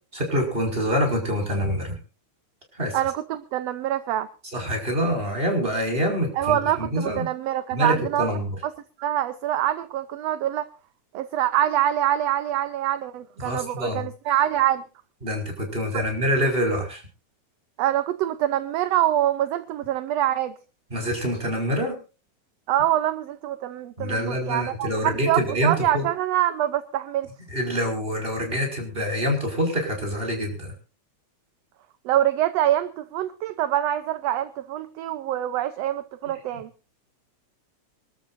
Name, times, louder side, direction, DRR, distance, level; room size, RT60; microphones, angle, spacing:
voice 1, 0.1-2.0 2.8-2.9 4.5-7.3 7.7-8.6 13.4-14.0 15.2-17.0 20.9-21.9 24.0-26.0 27.5-30.7, equal, 15° right, 2 dB, 5.8 m, -25 dB
voice 2, 2.9-4.3 6.3-8.3 8.6-8.7 9.0-10.7 11.1-14.8 15.9-16.0 17.8-20.5 22.7-27.3 32.0-36.7, right 12 dB, 70° right, 13 dB, 1.7 m, -25 dB
26.0 x 13.0 x 2.7 m, 0.34 s
omnidirectional pair, 3.4 m